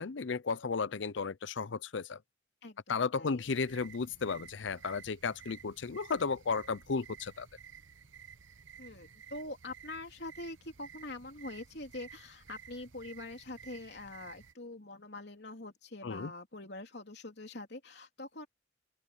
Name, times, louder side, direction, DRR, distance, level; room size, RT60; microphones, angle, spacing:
voice 1, 0.0-2.2 2.9-7.5 16.0-16.3, left 5 dB, 75° left, 0.6 m, -34 dB
voice 2, 2.6-3.5 8.8-18.5, left 2 dB, 60° left, 3.4 m, -44 dB
sound 1, 3.4-14.5, right 7 dB, 85° right, 1.1 m, -54 dB
open air
head